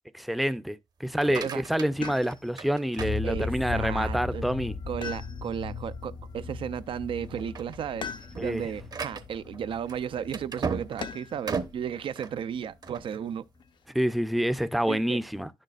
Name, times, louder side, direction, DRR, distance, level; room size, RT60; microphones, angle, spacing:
voice 1, 0.2-4.7 8.4-8.6 13.9-15.5, equal, ahead, 0.5 m, -27 dB
sound 1, 1.0-3.8 4.3-4.8 5.3-5.4 5.8-5.9 6.6-6.9 7.2-13.1, right 5 dB, 45° right, 0.9 m, -37 dB
voice 2, 1.3-1.6 3.2-4.4 4.9-13.4 14.9-15.2, right 8 dB, 70° right, 0.5 m, -34 dB
sound 2, 2.0-2.7 5.0-5.8 8.0-8.7 11.0-11.5 13.2-13.8, left 6 dB, 60° left, 0.6 m, -40 dB
sound 3, 3.0-12.6 12.8-12.9 13.2-13.3, left 4 dB, 80° left, 1.5 m, -38 dB
10.5 x 6.6 x 2.4 m
cardioid pair, 105°, 9 cm